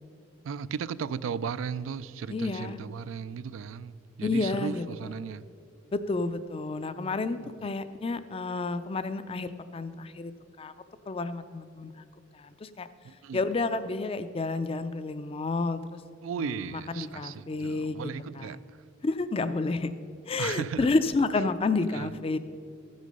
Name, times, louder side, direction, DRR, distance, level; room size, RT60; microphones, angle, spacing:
voice 1, 0.4-5.5 7.4-7.7 13.0-13.4 16.2-18.8 20.4-20.9 21.9-22.1, right 6 dB, 80° right, 17 dB, 0.3 m, -36 dB
voice 2, 2.3-2.8 4.2-4.8 5.9-10.3 10.6-10.7 11.1-12.1 12.3-12.9 13.3-16.0 17.0-18.0 18.4-18.5 19.0-19.9 20.3-22.4, left 3 dB, 30° left, 12 dB, 0.4 m, -30 dB
15.0 x 6.4 x 5.3 m, 2.4 s
head